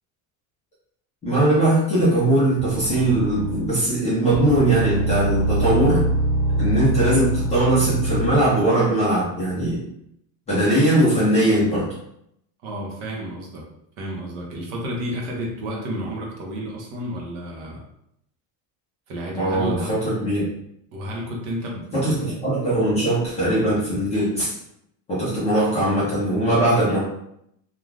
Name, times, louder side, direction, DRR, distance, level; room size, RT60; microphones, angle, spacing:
voice 1, 1.2-6.1 6.6-9.8 10.5-11.9 19.4-20.4 21.9-24.5 25.1-27.0, right 1 dB, 15° left, -10 dB, 0.5 m, -20 dB
sound 1, 2.6-3.8 4.3-8.4, right 1 dB, 5° right, 1.1 m, -24 dB
voice 2, 12.6-13.7 14.0-17.8 19.1-20.0 20.9-22.2, equal, 45° right, -1 dB, 0.7 m, -31 dB
2.4 x 2.3 x 3.1 m, 0.76 s
cardioid pair, 175°, 46 cm